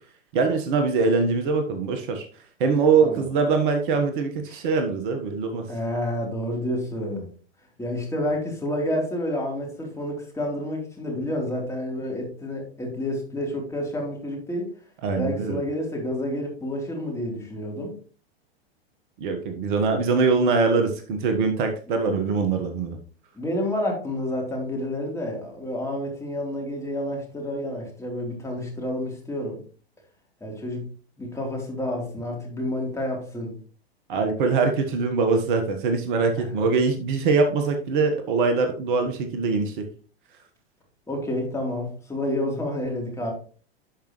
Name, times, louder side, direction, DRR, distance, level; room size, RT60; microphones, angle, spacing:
voice 1, 0.3-2.2 2.6-5.7 15.0-15.6 19.2-23.0 34.1-39.8, right 4 dB, 50° right, 6 dB, 1.4 m, -23 dB
voice 2, 5.7-7.3 7.8-14.7 15.2-17.9 23.3-29.6 30.4-30.9 31.2-33.6 36.4-36.5 41.1-43.3, left 1 dB, 10° left, -1 dB, 3.4 m, -29 dB
12.0 x 5.2 x 3.1 m, 0.40 s
figure-of-eight pair, 95°, 31 cm